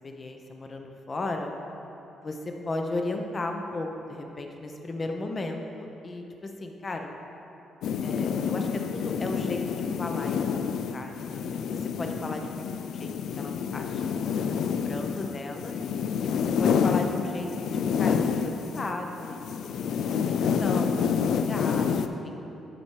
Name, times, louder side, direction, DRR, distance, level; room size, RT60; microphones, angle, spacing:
voice 1, 0.0-1.5 2.2-7.1 8.0-11.1 11.7-12.6 12.9-14.3 14.7-15.7 16.2-17.5 18.0-21.0 21.5-22.3, left 2 dB, 30° left, 3 dB, 0.8 m, -35 dB
sound 1, 7.8-18.9 19.2-22.1, left 6 dB, 75° left, 0.4 m, -28 dB
10.5 x 4.7 x 4.6 m, 3.0 s
cardioid pair, 90°, 0 cm